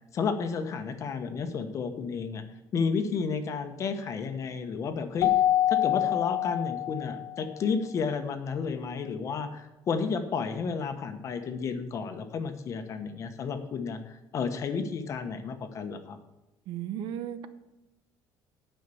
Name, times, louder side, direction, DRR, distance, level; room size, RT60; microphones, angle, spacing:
voice 1, 0.1-2.4 2.7-5.3 5.7-16.2, left 5 dB, 35° left, 7 dB, 1.1 m, -32 dB
Keyboard (musical), 5.2-7.5, left 13 dB, 85° left, 0.6 m, -26 dB
voice 2, 16.7-17.5, right 10 dB, 65° right, 12 dB, 0.8 m, -35 dB
9.7 x 5.6 x 7.0 m, 1.0 s
cardioid pair, 165°, 9 cm